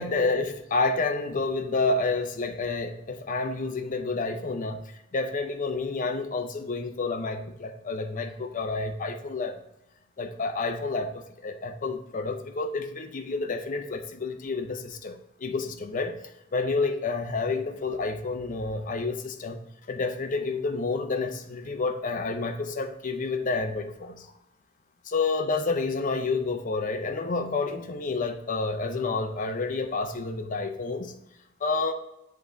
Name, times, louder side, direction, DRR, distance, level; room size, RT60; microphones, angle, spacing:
voice 1, 0.0-4.9 5.1-9.5 10.2-16.1 16.5-19.6 19.9-24.3 25.1-31.1 31.6-31.9, left 3 dB, 40° left, 6 dB, 0.6 m, -29 dB
7.4 x 3.8 x 4.0 m, 0.86 s
head